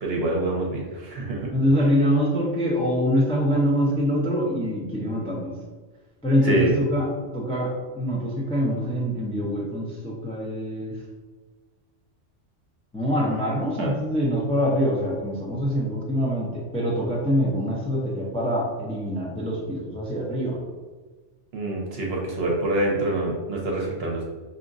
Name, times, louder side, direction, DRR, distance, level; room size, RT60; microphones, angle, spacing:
voice 1, 0.0-1.5 6.4-6.7 13.8-13.9 21.5-24.2, right 1 dB, 60° right, -1 dB, 0.9 m, -26 dB
voice 2, 1.5-5.5 6.2-7.0 7.3-10.9 12.9-20.6, equal, 5° left, -4 dB, 0.5 m, -24 dB
4.9 x 2.8 x 2.5 m, 1.4 s
omnidirectional pair, 1.2 m